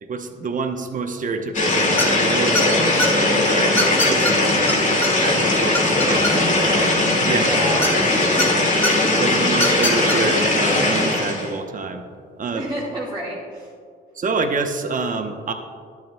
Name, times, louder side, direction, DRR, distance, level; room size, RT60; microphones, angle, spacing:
voice 1, 0.0-6.2 7.2-7.5 9.2-12.0 12.4-12.7 14.1-15.5, right 4 dB, 40° right, 6 dB, 0.8 m, -27 dB
sound 1, 1.5-11.5, left 2 dB, 40° left, 1.8 m, -19 dB
sound 2, 2.0-2.2 2.5-3.1 3.8-4.3 4.7-4.8 5.0-5.1 5.5-6.6 7.8-8.5 8.8-8.9 9.5-10.2, left 1 dB, 10° left, 1.4 m, -22 dB
voice 2, 6.1-6.9 7.3-8.6 9.1-9.3 12.5-13.7, right 1 dB, 20° right, -7 dB, 2.0 m, -31 dB
10.5 x 9.3 x 2.2 m, 2.2 s
cardioid pair, 90°, 20 cm